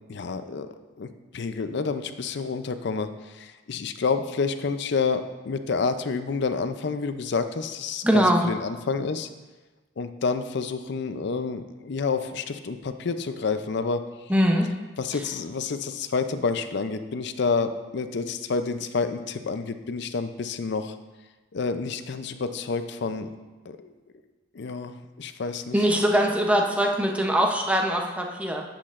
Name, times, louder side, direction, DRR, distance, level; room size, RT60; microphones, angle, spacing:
voice 1, 0.1-0.7 1.0-1.1 1.3-9.3 10.0-14.1 15.0-20.9 21.5-23.3 23.7-23.9 24.5-25.9, left 4 dB, 60° left, 9 dB, 0.5 m, -29 dB
voice 2, 8.0-8.4 14.3-14.7 25.7-28.6, equal, 5° right, 1 dB, 0.6 m, -22 dB
10.5 x 7.6 x 2.5 m, 1.2 s
head